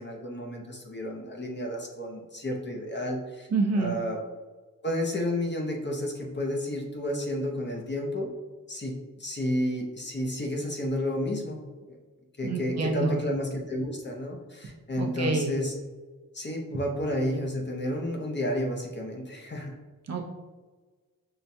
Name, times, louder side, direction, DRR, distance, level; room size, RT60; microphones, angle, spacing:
voice 1, 0.0-3.5 3.7-4.2 4.8-8.3 8.7-11.6 11.9-12.0 12.4-15.8 16.3-19.7, left 1 dB, 35° left, 0 dB, 0.7 m, -31 dB
voice 2, 3.5-4.0 12.4-13.2 15.0-15.5 20.1-20.2, right 3 dB, 50° right, 1 dB, 0.6 m, -27 dB
5.6 x 2.3 x 2.7 m, 1.3 s
wide cardioid pair, 95°, 33 cm